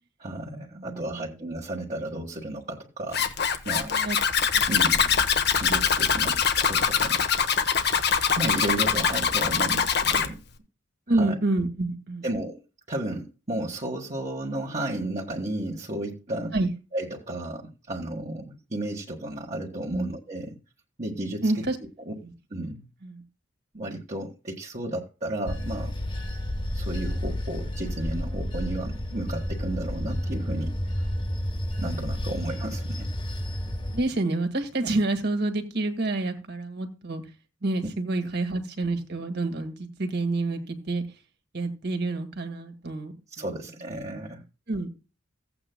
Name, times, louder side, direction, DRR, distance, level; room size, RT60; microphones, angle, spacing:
voice 1, 0.2-3.9 4.7-5.1 5.5-10.4 11.1-11.3 12.2-12.6 12.9-16.5 16.9-20.6 21.0-21.5 22.0-22.1 22.5-22.9 23.7-25.9 26.7-30.7 31.8-33.1 43.3-44.4, right 1 dB, 35° right, 1.7 m, -33 dB
voice 2, 0.7-1.4 3.7-4.2 4.6-4.7 11.1-12.3 16.5-16.7 19.9-20.1 21.4-21.8 22.2-22.3 23.0-23.2 33.9-37.2 37.6-41.0 41.5-43.5 44.3-44.4 44.7-45.0, right 2 dB, 60° right, 2.1 m, -28 dB
Zipper (clothing), 3.1-10.3, left 7 dB, 60° left, 1.2 m, -23 dB
Bell / Train, 25.5-34.0, equal, 30° left, 1.6 m, -31 dB
16.5 x 8.6 x 2.3 m
head